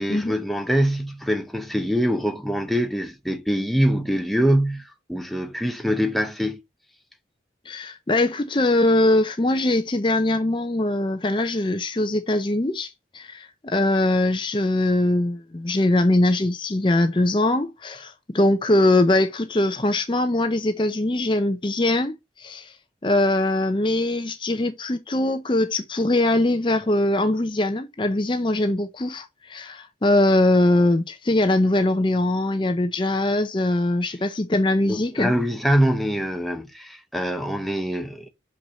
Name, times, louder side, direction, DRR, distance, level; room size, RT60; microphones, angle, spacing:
voice 1, 0.0-6.6 34.8-38.3, equal, ahead, 0.8 m, -24 dB
voice 2, 7.7-22.8 23.0-35.3, left 1 dB, 25° left, 0.6 m, -22 dB
5.9 x 4.3 x 6.2 m
head